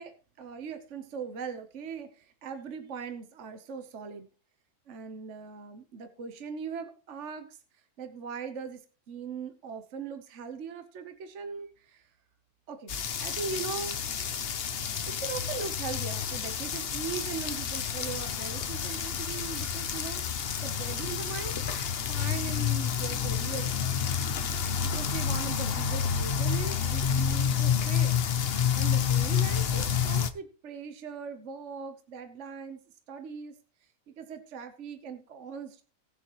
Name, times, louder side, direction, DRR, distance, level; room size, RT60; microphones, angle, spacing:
voice 1, 0.0-4.3 4.9-7.6 8.0-12.1 12.7-12.9 13.2-13.9 15.1-20.2 20.6-21.6 22.1-24.0 24.8-28.2 28.7-32.8 33.1-33.5 34.2-35.8, right 6 dB, 55° right, 8 dB, 1.3 m, -40 dB
sound 1, 12.9-30.3, left 7 dB, 50° left, 0.9 m, -29 dB
18.5 x 6.9 x 3.1 m, 0.38 s
omnidirectional pair, 1.5 m